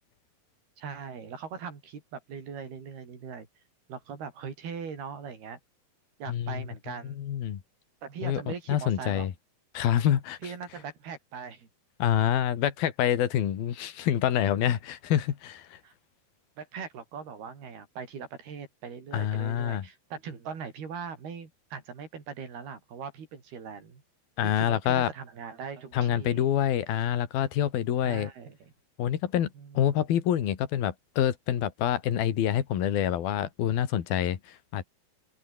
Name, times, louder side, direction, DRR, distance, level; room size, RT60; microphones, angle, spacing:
voice 1, 0.8-3.5 3.9-5.6 6.2-7.2 8.0-9.3 10.4-11.7 15.8-15.9 16.6-24.0 24.4-26.4 28.0-28.7 29.6-29.8, right 6 dB, 90° right, 6.6 m, -40 dB
voice 2, 6.3-6.7 7.0-7.6 8.2-9.3 9.7-10.5 12.0-15.8 19.1-19.9 24.4-25.1 25.9-28.3 29.0-29.5 29.8-34.8, left 10 dB, 75° left, 4.0 m, -27 dB
open air
omnidirectional pair, 4.4 m